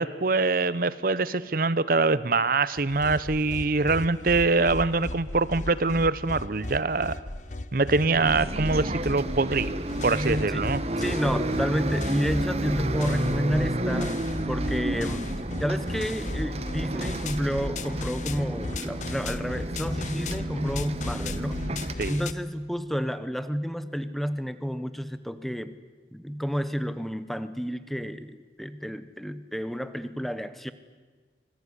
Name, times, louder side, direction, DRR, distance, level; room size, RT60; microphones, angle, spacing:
voice 1, 0.0-7.2 7.7-9.8 10.0-10.8 22.0-22.2, right 3 dB, 50° right, 17 dB, 0.8 m, -24 dB
sound 1, 2.8-22.3, left 2 dB, 40° left, 0.9 m, -36 dB
Bus, 8.1-21.9, right 1 dB, 35° right, 1.4 m, -31 dB
voice 2, 11.0-14.1 14.5-15.3 15.6-21.6 22.1-25.7 26.1-30.7, equal, ahead, 12 dB, 1.0 m, -30 dB
25.5 x 21.0 x 9.8 m, 1.4 s
head